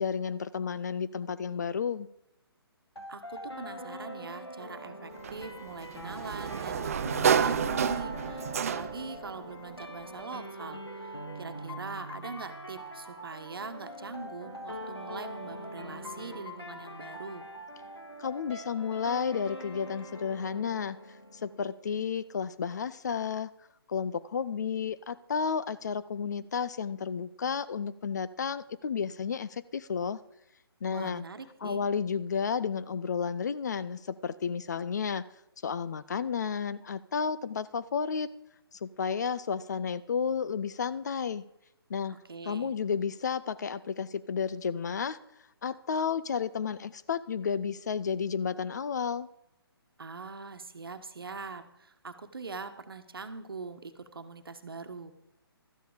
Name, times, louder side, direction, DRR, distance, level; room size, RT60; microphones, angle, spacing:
voice 1, 0.0-2.1 18.2-21.0 21.4-23.5 23.9-30.2 30.8-31.2 31.6-35.3 35.6-38.3 38.8-41.4 41.9-42.2 42.5-45.2 45.6-49.3, left 6 dB, 45° left, 15 dB, 0.5 m, -32 dB
sound 1, 3.0-21.9, equal, 85° left, 1.9 m, -42 dB
voice 2, 3.1-17.4 30.9-31.8 42.1-42.7 50.0-55.1, right 4 dB, 65° right, 8 dB, 1.2 m, -42 dB
Sliding door, 5.2-9.2, right 7 dB, 35° right, 0.4 m, -29 dB
13.0 x 9.1 x 5.0 m, 0.81 s
figure-of-eight pair, 140°, 13 cm